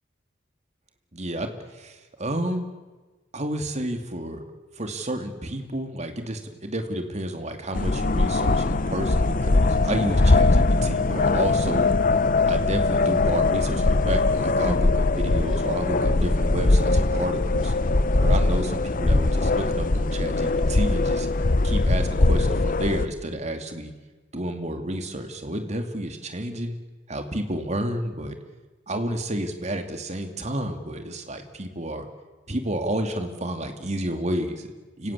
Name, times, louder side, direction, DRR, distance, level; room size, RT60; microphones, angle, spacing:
voice 1, 1.1-2.7 3.3-4.4 4.8-11.9 12.4-17.7 18.2-18.6 18.9-21.3 21.6-23.9 24.3-26.8 27.1-28.4 28.9-32.1 32.5-35.1, right 1 dB, 40° right, 6 dB, 2.6 m, -30 dB
sound 1, 7.7-23.1, left 2 dB, 45° left, 0.8 m, -21 dB
29.5 x 17.5 x 8.4 m, 1.3 s
head